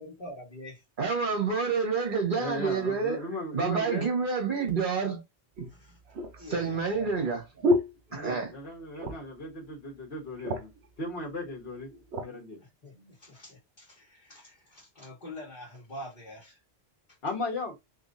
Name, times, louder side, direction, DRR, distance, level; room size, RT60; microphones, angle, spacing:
voice 1, 0.0-0.8 5.7-6.0 6.4-7.3 12.6-16.6, left 1 dB, 45° left, 1.8 m, -45 dB
voice 2, 1.0-3.3 3.5-5.2 6.5-7.4 8.1-8.5, right 5 dB, 50° right, 1.6 m, -28 dB
voice 3, 2.3-4.1 8.1-10.7 11.0-11.9 12.2-12.6 17.2-17.8, left 2 dB, 70° left, 1.6 m, -36 dB
sound 1, 4.6-4.7 5.5-8.7 8.9-9.4 9.8-9.9 10.2-10.9 11.6-12.3 12.9-13.1, left 1 dB, 80° right, 1.0 m, -31 dB
3.8 x 3.1 x 2.6 m
omnidirectional pair, 1.1 m